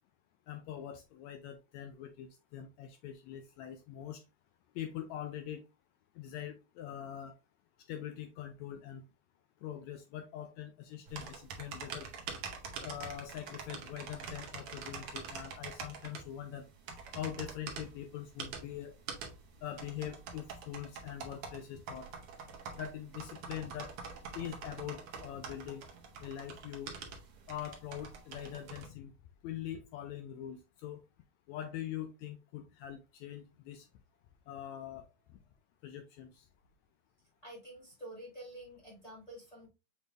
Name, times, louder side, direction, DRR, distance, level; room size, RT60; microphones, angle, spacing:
voice 1, 0.5-4.2 4.7-5.6 6.2-7.3 7.9-9.0 9.6-12.1 12.8-16.6 17.1-18.9 19.6-22.1 22.8-23.9 24.3-25.8 26.2-26.9 27.5-29.1 29.4-31.0 31.5-33.9 34.5-35.1 35.8-36.4, left 10 dB, 80° left, 7 dB, 1.7 m, -43 dB
sound 1, 11.1-28.9, right 5 dB, 70° right, 1.3 m, -45 dB
voice 2, 37.4-39.7, right 1 dB, 20° left, -5 dB, 1.1 m, -48 dB
6.3 x 3.5 x 2.4 m, 0.27 s
omnidirectional pair, 3.6 m